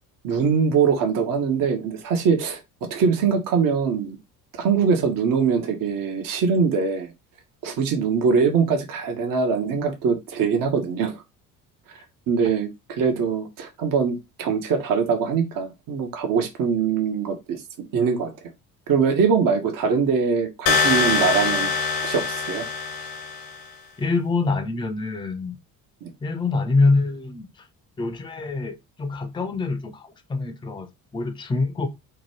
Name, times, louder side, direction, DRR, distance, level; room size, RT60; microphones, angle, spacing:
voice 1, 0.2-2.6 2.9-4.2 4.6-7.1 7.6-11.2 12.3-17.6 17.9-18.3 18.9-21.7 22.0-22.6 26.0-26.1, right 6 dB, 45° right, 0.8 m, -22 dB
sound 1, 20.7-23.6, left 4 dB, 65° left, 0.8 m, -23 dB
voice 2, 24.0-25.6 26.2-27.5 28.0-30.9 31.1-31.9, left 3 dB, 10° left, 0.5 m, -25 dB
2.9 x 2.2 x 2.9 m
hypercardioid pair, 55°, 47 cm